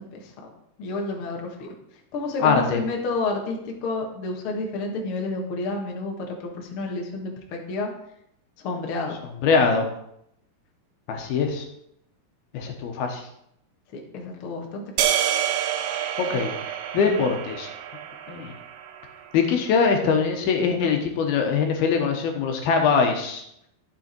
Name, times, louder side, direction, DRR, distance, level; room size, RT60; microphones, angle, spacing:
voice 1, 0.8-1.7 2.1-7.9 8.6-9.2 13.9-14.8, left 3 dB, 55° left, 1 dB, 1.5 m, -30 dB
voice 2, 2.4-2.8 9.4-9.9 11.1-11.7 12.5-13.2 16.2-16.5 16.9-17.7 18.3-18.5 19.3-23.4, left 5 dB, 75° left, 3 dB, 2.9 m, -22 dB
sound 1, 15.0-19.3, right 10 dB, 85° right, 2.9 m, -28 dB
12.0 x 7.0 x 4.4 m, 0.76 s
omnidirectional pair, 4.7 m